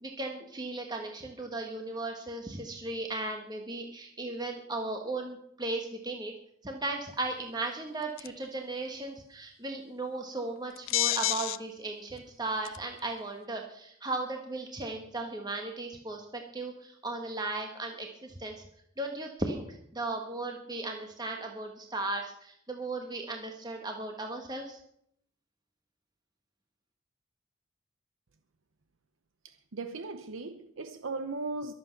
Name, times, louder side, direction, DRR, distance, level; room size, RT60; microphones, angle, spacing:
voice 1, 0.0-6.3 6.6-18.6 19.0-24.8, right 2 dB, 20° right, 1.4 m, -36 dB
sound 1, 8.2-8.5 10.8-11.6 12.2-12.3 12.7-13.0, left 14 dB, 75° left, 0.6 m, -28 dB
voice 2, 29.4-31.7, right 3 dB, 75° right, 0.8 m, -37 dB
22.5 x 8.1 x 5.9 m
head